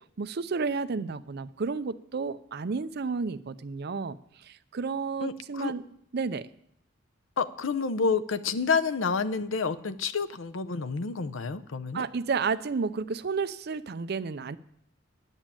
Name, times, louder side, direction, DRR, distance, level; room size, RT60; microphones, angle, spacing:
voice 1, 0.2-5.8 6.1-6.5 11.9-14.6, right 4 dB, 55° right, 13 dB, 0.5 m, -31 dB
voice 2, 5.2-5.7 7.4-12.0, left 5 dB, 80° left, 12 dB, 0.7 m, -29 dB
10.5 x 7.2 x 8.9 m, 0.74 s
head